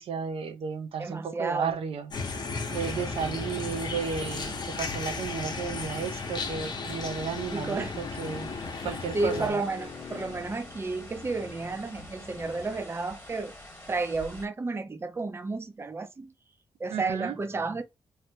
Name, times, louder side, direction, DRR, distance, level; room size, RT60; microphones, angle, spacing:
voice 1, 0.0-8.5 8.8-9.6 16.9-17.4, right 6 dB, 80° right, 0.5 m, -34 dB
voice 2, 1.0-1.8 7.5-8.0 8.7-8.9 9.1-13.5 13.9-16.3 16.8-17.8, right 3 dB, 25° right, 0.5 m, -32 dB
sound 1, 2.1-9.5, left 4 dB, 50° left, 0.7 m, -35 dB
sound 2, 2.7-14.5, left 1 dB, 20° left, 1.3 m, -47 dB
sound 3, 6.9-12.8, left 5 dB, 90° left, 0.7 m, -46 dB
3.2 x 2.1 x 2.7 m
cardioid pair, 80°, 10 cm